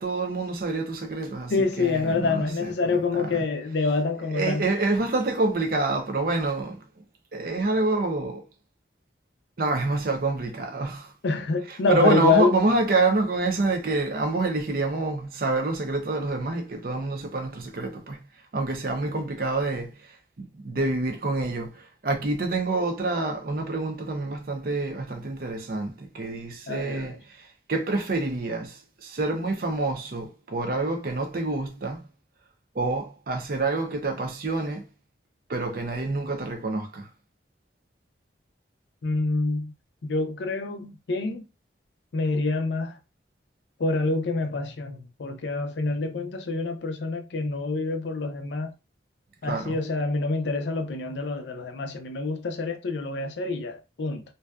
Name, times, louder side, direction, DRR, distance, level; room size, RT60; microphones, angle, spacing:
voice 1, 0.0-3.4 4.2-6.9 7.3-8.4 9.6-11.1 11.7-18.2 18.5-32.0 32.7-34.9 35.5-37.1 49.4-49.8, right 2 dB, 55° right, 0.5 m, -27 dB
voice 2, 1.5-4.6 11.2-12.5 26.7-27.2 39.0-39.7 40.0-41.4 42.1-43.0 43.8-48.7 49.4-54.2, left 3 dB, 75° left, 0.5 m, -26 dB
2.6 x 2.3 x 2.2 m
head